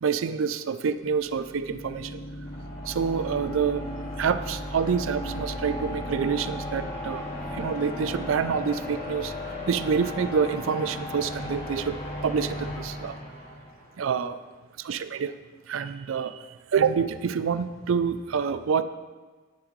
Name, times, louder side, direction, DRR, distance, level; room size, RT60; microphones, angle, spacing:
voice 1, 0.0-2.2 2.9-3.9 4.2-7.2 7.5-9.3 9.7-12.0 12.2-13.1 14.0-14.4 14.8-15.3 15.7-18.8, right 6 dB, 70° right, 12 dB, 0.4 m, -27 dB
sound 1, 0.9-14.0, left 1 dB, 50° left, 3.4 m, -35 dB
11.0 x 9.9 x 3.1 m, 1.3 s
head